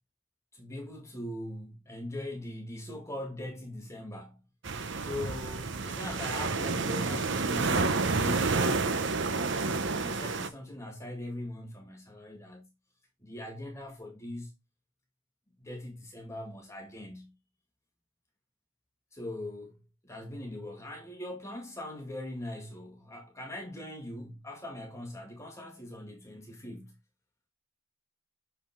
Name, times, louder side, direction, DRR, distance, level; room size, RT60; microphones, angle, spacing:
voice 1, 0.5-4.4 5.0-9.2 9.7-12.7 13.2-14.5 15.6-17.3 19.1-27.0, left 1 dB, 15° left, 1.9 m, -41 dB
sound 1, 4.6-10.5, right 3 dB, 55° right, 0.8 m, -29 dB
6.9 x 5.5 x 3.6 m
head